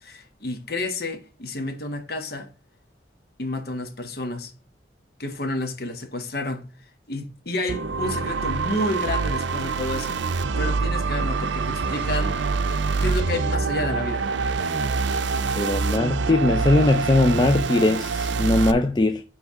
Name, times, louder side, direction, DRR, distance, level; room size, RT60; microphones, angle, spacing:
voice 1, 0.0-2.5 3.4-4.5 5.2-6.7 7.1-10.2 10.5-12.4 13.0-14.3, left 2 dB, 55° left, 1.1 m, -30 dB
sound 1, 7.7-18.7, right 4 dB, 80° right, 0.5 m, -25 dB
voice 2, 15.5-19.2, left 2 dB, 25° left, 0.4 m, -20 dB
9.7 x 3.3 x 3.6 m
head